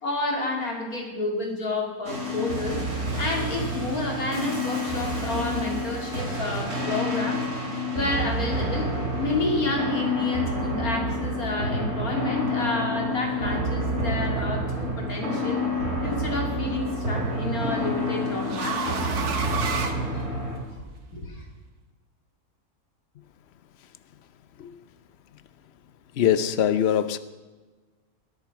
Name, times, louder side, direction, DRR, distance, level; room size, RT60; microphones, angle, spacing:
voice 1, 0.0-2.8 3.2-7.4 7.9-8.9 9.2-15.6 16.0-19.1 20.1-20.2 21.1-21.4, left 2 dB, 70° left, 3.2 m, -30 dB
sound 1, 2.0-20.6, equal, 45° right, 3.5 m, -28 dB
sound 2, 14.9-15.4 16.8-20.8, right 5 dB, 90° right, 1.8 m, -33 dB
voice 2, 26.2-27.2, left 9 dB, 55° left, 0.9 m, -22 dB
21.5 x 7.9 x 6.0 m
omnidirectional pair, 1.6 m